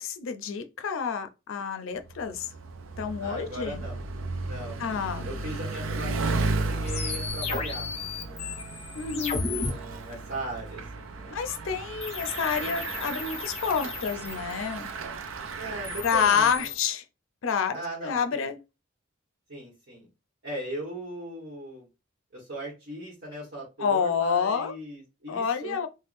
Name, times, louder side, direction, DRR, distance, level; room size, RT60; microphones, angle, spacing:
voice 1, 0.0-2.5 3.0-3.8 4.8-5.3 8.9-9.5 11.3-14.9 16.0-17.0 17.4-18.6 23.8-24.7 25.3-25.9, left 6 dB, 85° left, 0.5 m, -28 dB
Bicycle, 2.0-16.7, right 3 dB, 85° right, 0.4 m, -35 dB
voice 2, 3.2-4.0 4.5-4.8 5.2-7.9 8.2-8.8 9.6-11.3 15.6-16.7 17.7-18.5 19.5-20.1 20.4-21.9 22.3-25.8, right 1 dB, 55° right, 1.2 m, -39 dB
sound 1, 6.9-9.7 12.0-14.8 15.6-16.9, left 4 dB, 30° left, 0.5 m, -35 dB
3.4 x 2.1 x 2.5 m
head